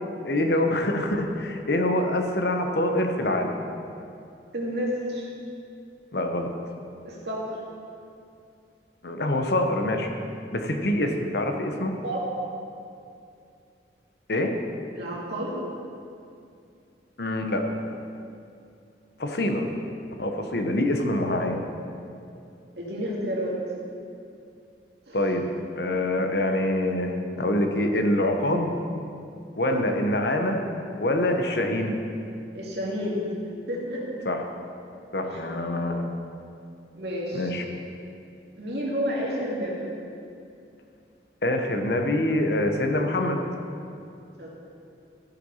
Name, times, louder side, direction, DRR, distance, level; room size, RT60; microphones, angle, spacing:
voice 1, 0.2-3.6 6.1-6.5 9.0-10.1 10.5-11.9 14.3-14.5 17.2-17.6 19.2-19.6 20.2-21.6 25.1-25.5 25.8-28.7 29.6-30.6 31.0-32.0 34.3-34.4 35.1-36.1 37.3-37.6 41.4-43.4, left 1 dB, 60° left, 4 dB, 1.0 m, -25 dB
voice 2, 4.5-5.3 7.0-7.6 12.0-12.3 15.0-15.6 22.8-23.6 25.1-25.2 32.5-33.2 33.7-34.1 35.2-35.4 36.9-37.5 38.6-39.9 44.4-44.6, equal, 60° right, -4 dB, 2.4 m, -30 dB
14.5 x 5.9 x 5.6 m, 2.5 s
head